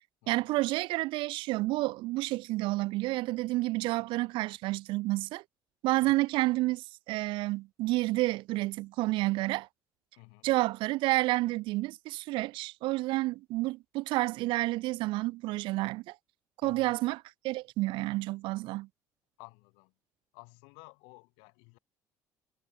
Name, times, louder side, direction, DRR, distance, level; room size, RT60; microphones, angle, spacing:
voice 1, 0.3-5.4 5.8-9.7 10.4-16.2 16.6-17.2 17.4-18.9, right 20 dB, 65° right, 0.4 m, -30 dB
voice 2, 10.2-10.5 16.6-17.0 19.4-19.9 20.3-21.8, left 34 dB, 75° left, 3.9 m, -53 dB
hypercardioid pair, 60°, 9 cm